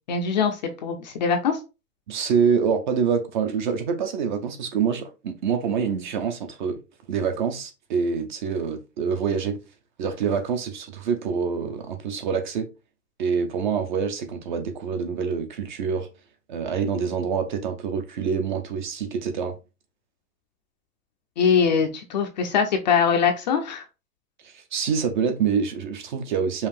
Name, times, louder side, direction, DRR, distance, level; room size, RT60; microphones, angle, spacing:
voice 1, 0.1-1.6 21.4-23.8, left 6 dB, 30° left, 0.4 m, -22 dB
voice 2, 2.1-6.8 7.1-9.6 10.0-12.7 13.2-16.1 16.5-19.5 24.4-26.7, right 6 dB, 35° right, 0.5 m, -26 dB
5.4 x 2.4 x 3.3 m
hypercardioid pair, 150°, 46 cm